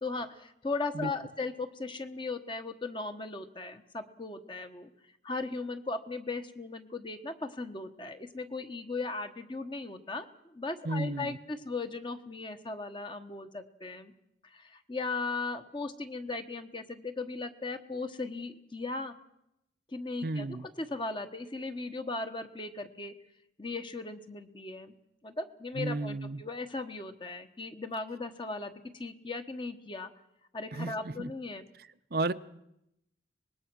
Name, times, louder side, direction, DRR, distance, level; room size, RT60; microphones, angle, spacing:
voice 1, 0.0-4.9 5.2-14.1 14.4-19.1 19.9-23.1 23.6-24.9 25.2-30.1 30.5-31.7, left 3 dB, 25° left, 1.3 m, -37 dB
voice 2, 10.8-11.4 20.2-20.7 25.8-26.4 30.7-31.3 32.1-32.3, right 2 dB, 55° right, 0.7 m, -33 dB
24.5 x 20.5 x 6.3 m
head